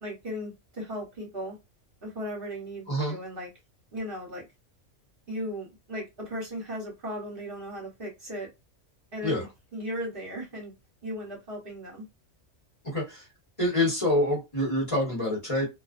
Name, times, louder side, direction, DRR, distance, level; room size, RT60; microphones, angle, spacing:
voice 1, 0.0-1.6 2.0-3.5 3.9-4.4 5.3-8.5 9.1-9.5 9.7-10.7 11.0-12.0, equal, 50° right, 1.1 m, -36 dB
voice 2, 2.9-3.2 9.2-9.5 12.8-13.3 13.6-15.7, left 1 dB, 25° left, 1.2 m, -26 dB
2.5 x 2.2 x 2.5 m
omnidirectional pair, 1.3 m